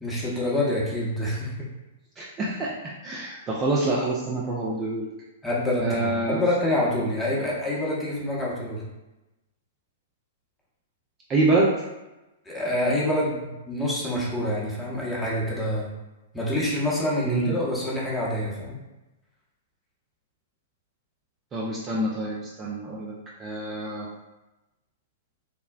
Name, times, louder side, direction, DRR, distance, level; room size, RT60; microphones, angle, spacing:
voice 1, 0.0-1.5 5.4-8.8 12.5-15.9 16.3-18.8, left 1 dB, 5° left, -6 dB, 0.8 m, -26 dB
voice 2, 2.2-5.1 5.8-6.4 11.3-11.7 17.3-17.5 21.5-24.1, right 2 dB, 25° right, -5 dB, 0.4 m, -26 dB
3.4 x 2.1 x 2.3 m, 1.0 s
figure-of-eight pair, 105°, 0 cm